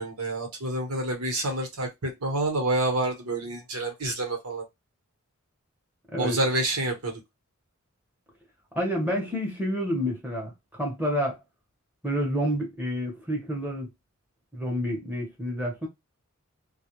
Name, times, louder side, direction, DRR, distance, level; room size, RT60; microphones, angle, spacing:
voice 1, 0.0-4.6 6.2-7.1, right 2 dB, 90° right, 1.0 m, -28 dB
voice 2, 8.7-10.5 10.8-11.4 12.0-13.9 14.5-15.9, equal, 10° right, 0.8 m, -28 dB
2.3 x 2.1 x 2.9 m
head